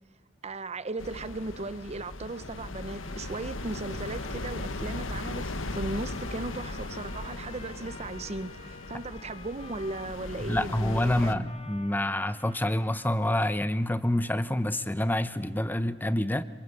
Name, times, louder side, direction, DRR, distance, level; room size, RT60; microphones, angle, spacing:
voice 1, 0.4-11.5, right 2 dB, 35° right, 0.7 m, -37 dB
sound 1, 1.0-11.4, left 2 dB, 85° left, 1.4 m, -38 dB
Trumpet, 2.7-13.2, left 3 dB, 35° left, 2.4 m, -51 dB
voice 2, 10.5-16.4, left 1 dB, 10° left, 0.8 m, -27 dB
26.5 x 23.0 x 8.4 m
head